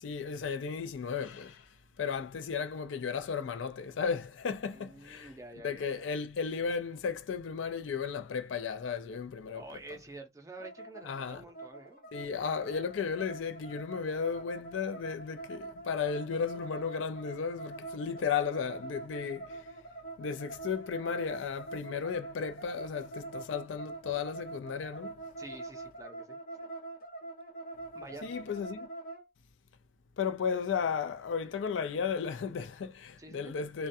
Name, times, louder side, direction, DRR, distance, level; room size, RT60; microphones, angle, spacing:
voice 1, 0.0-1.6 2.0-5.3 5.6-9.6 11.1-11.4 12.1-19.6 20.2-25.1 28.2-28.9 30.2-33.9, left 6 dB, 90° left, 0.4 m, -34 dB
voice 2, 4.7-6.1 9.5-12.1 25.4-26.4 27.9-28.3 31.4-31.5 33.2-33.5, right 2 dB, 15° right, 0.5 m, -48 dB
sound 1, 10.6-29.2, right 2 dB, 50° left, 0.9 m, -44 dB
2.3 x 2.1 x 2.6 m
head